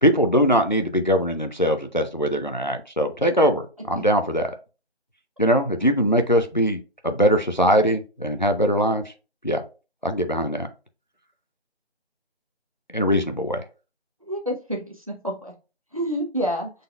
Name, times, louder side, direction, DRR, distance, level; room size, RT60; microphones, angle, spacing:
voice 1, 0.0-4.5 5.4-6.8 7.0-9.0 9.4-9.6 10.0-10.7 12.9-13.6, equal, 45° left, 7 dB, 0.4 m, -21 dB
voice 2, 14.2-15.5 15.9-16.7, equal, 35° right, 0 dB, 0.8 m, -28 dB
5.3 x 3.9 x 2.3 m, 0.32 s
figure-of-eight pair, 175°, 33 cm